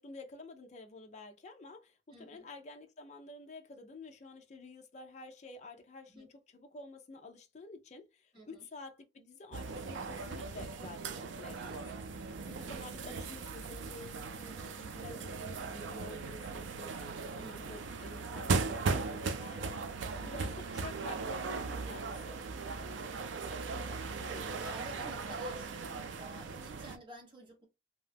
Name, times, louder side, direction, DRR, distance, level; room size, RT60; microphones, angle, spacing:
voice 1, 0.0-11.9 12.5-19.8 20.2-22.4, left 2 dB, 40° left, 0.4 m, -50 dB
voice 2, 2.1-2.5 6.1-6.3 8.3-8.7 11.5-11.9 12.3-12.7 17.4-17.8 20.1-20.5 22.7-27.7, right 1 dB, 25° right, 1.2 m, -52 dB
sound 1, 9.5-27.0, right 4 dB, 85° right, 0.4 m, -38 dB
2.7 x 2.2 x 3.3 m
head